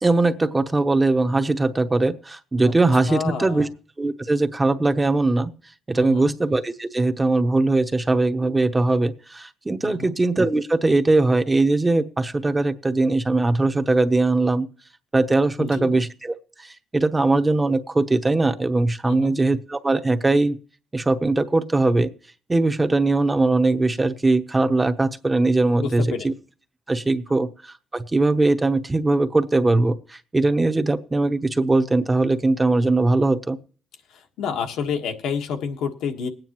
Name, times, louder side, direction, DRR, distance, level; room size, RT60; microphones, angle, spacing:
voice 1, 0.0-3.7 4.0-5.5 5.9-14.7 15.1-20.6 20.9-22.1 22.5-26.3 26.9-33.6, right 2 dB, 20° right, 9 dB, 0.9 m, -20 dB
voice 2, 3.1-3.7 5.9-6.4 9.8-10.1 15.6-16.0 19.0-19.3 25.8-26.3 34.1-36.3, left 6 dB, 85° left, 4 dB, 1.5 m, -29 dB
20.0 x 9.1 x 3.0 m, 0.40 s
cardioid pair, 90°, 0 cm